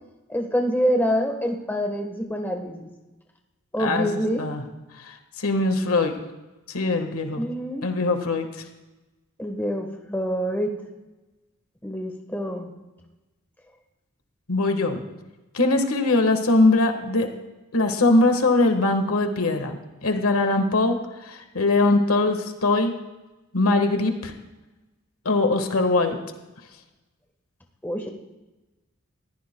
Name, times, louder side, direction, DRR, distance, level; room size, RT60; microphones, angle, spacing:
voice 1, 0.3-2.9 3.7-4.4 7.3-7.8 9.4-10.7 11.8-12.7 27.8-28.1, equal, 10° left, 2 dB, 1.2 m, -26 dB
voice 2, 3.8-4.6 5.1-6.1 6.7-7.4 7.8-8.5 14.5-15.0 15.5-17.3 17.7-19.7 20.0-21.0 21.2-22.9 23.5-24.3 25.2-26.2, left 2 dB, 85° left, 6 dB, 1.4 m, -21 dB
20.5 x 15.0 x 2.2 m, 1.1 s
head